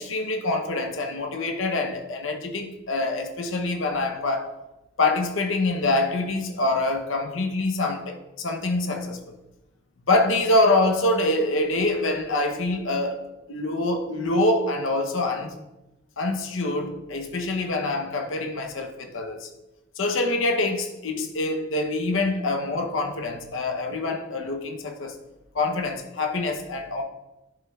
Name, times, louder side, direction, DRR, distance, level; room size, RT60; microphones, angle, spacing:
voice 1, 0.0-4.5 5.0-9.3 10.1-13.2 13.5-15.6 16.2-19.5 20.0-25.1 25.5-27.0, left 2 dB, 75° left, 0.8 m, -25 dB
11.0 x 5.3 x 2.4 m
head